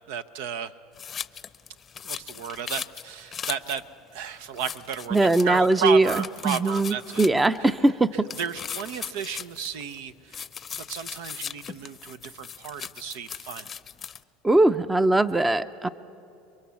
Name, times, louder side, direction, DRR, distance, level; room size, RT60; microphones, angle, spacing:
voice 1, 0.1-0.7 2.0-3.8 4.1-7.2 7.6-7.7 8.4-10.4 10.7-13.7 15.8-15.9, right 8 dB, 80° right, 13 dB, 0.8 m, -33 dB
sound 1, 1.0-3.8 4.2-4.3 4.6-5.8 6.0-7.6 8.3-10.0 10.3-14.2, left 7 dB, 30° left, 0.6 m, -38 dB
voice 2, 5.1-6.1 6.4-8.3 14.4-15.9, right 2 dB, 10° right, 14 dB, 0.6 m, -21 dB
29.5 x 23.0 x 7.1 m, 2.9 s
supercardioid pair, 115°, 0 cm